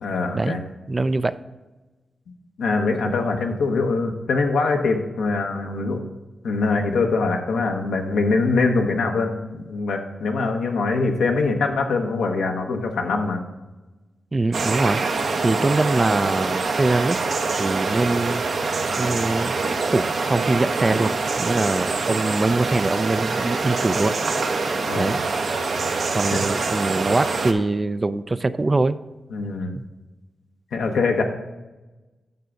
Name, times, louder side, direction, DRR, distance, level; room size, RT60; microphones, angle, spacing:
voice 1, 0.0-0.6 2.6-6.0 6.4-13.4 24.8-25.1 26.3-26.4 29.3-29.8 30.7-31.2, left 3 dB, 85° left, 3 dB, 1.0 m, -23 dB
voice 2, 0.9-1.3 14.3-17.2 17.5-19.6 19.9-21.1 21.4-24.2 25.0-25.2 26.1-29.0 29.7-29.8, right 2 dB, 35° right, 13 dB, 0.4 m, -23 dB
sound 1, 14.5-27.5, right 3 dB, 70° right, 1.0 m, -25 dB
9.4 x 6.9 x 3.9 m, 1.1 s
cardioid pair, 50°, 0 cm